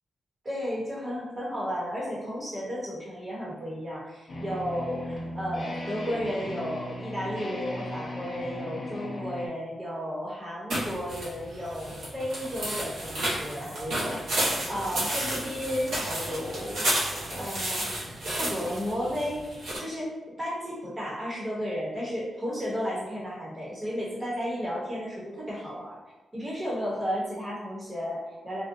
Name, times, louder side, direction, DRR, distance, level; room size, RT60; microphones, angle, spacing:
voice 1, 0.4-14.2 14.7-16.9 17.3-17.9 18.3-19.4 19.8-20.1 20.4-26.0 26.3-28.6, equal, 25° right, -6 dB, 0.9 m, -33 dB
sound 1, 4.3-9.5, left 1 dB, 45° left, 0.5 m, -36 dB
sound 2, 10.7-19.8, right 1 dB, 90° right, 0.9 m, -31 dB
2.6 x 2.1 x 2.6 m, 1.1 s
wide cardioid pair, 125°, 0 cm